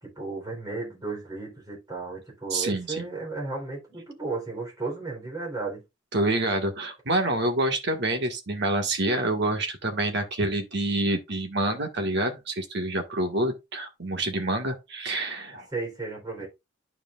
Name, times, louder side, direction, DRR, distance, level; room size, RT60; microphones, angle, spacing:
voice 1, 0.0-5.8 15.5-16.5, right 3 dB, 20° right, 3.7 m, -34 dB
voice 2, 2.5-3.0 6.1-15.7, right 2 dB, 60° right, 1.7 m, -27 dB
11.5 x 4.9 x 2.4 m
head